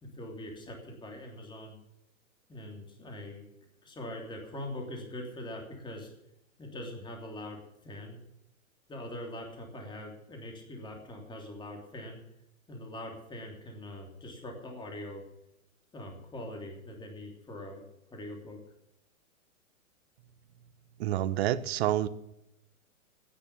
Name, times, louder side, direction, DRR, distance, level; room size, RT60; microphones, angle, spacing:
voice 1, 0.0-1.8 2.5-3.4 3.8-6.1 6.6-8.2 8.9-12.2 12.7-15.2 15.9-17.8 18.1-18.6, left 1 dB, 10° left, 3.1 m, -42 dB
voice 2, 21.0-22.1, right 12 dB, 50° right, 1.0 m, -28 dB
13.5 x 10.0 x 7.1 m
hypercardioid pair, 135°, 41 cm